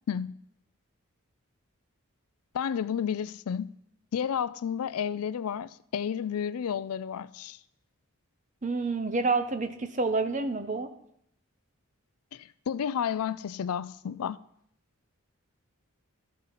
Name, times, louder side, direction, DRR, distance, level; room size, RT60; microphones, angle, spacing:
voice 1, 2.5-3.7 4.1-7.6 12.3-14.4, left 8 dB, 85° left, 0.4 m, -31 dB
voice 2, 8.6-10.9, right 3 dB, 35° right, 0.7 m, -28 dB
13.0 x 5.4 x 5.7 m
head